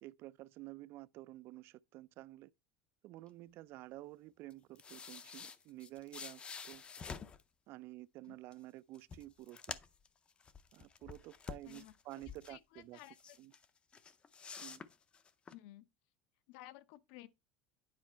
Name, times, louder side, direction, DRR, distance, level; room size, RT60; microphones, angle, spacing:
voice 1, 0.0-2.5 3.0-6.8 7.7-9.8 10.7-13.0 13.4-13.5 14.6-14.8, right 17 dB, 40° right, 0.3 m, -51 dB
sound 1, 4.5-7.4 8.5-8.6 8.9-10.1 10.4-12.6 13.0-13.7 13.9-15.5, left 6 dB, 20° left, 0.5 m, -49 dB
voice 2, 11.6-12.2 12.5-13.4 15.5-15.9 16.5-17.3, left 15 dB, 65° left, 0.8 m, -55 dB
9.3 x 5.2 x 4.3 m
cardioid pair, 165°, 6 cm